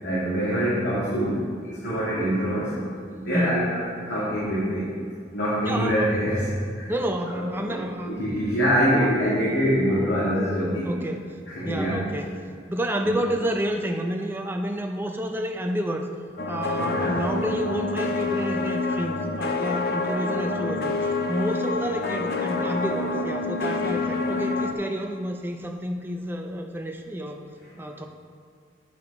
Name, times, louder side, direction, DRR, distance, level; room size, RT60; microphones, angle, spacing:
voice 1, 0.0-1.4 1.8-2.7 3.1-4.9 5.3-6.9 7.3-7.8 8.0-10.9 11.5-12.0 13.0-13.2 16.7-17.2, equal, 75° left, -10 dB, 2.1 m, -25 dB
voice 2, 3.3-3.7 5.7-6.1 6.9-8.1 10.9-11.3 11.6-12.3 12.7-16.1 16.5-27.4 27.8-28.1, equal, 10° right, 3 dB, 0.4 m, -29 dB
sound 1, 16.4-24.7, left 3 dB, 55° left, 0.5 m, -27 dB
8.7 x 6.1 x 4.2 m, 2.2 s
head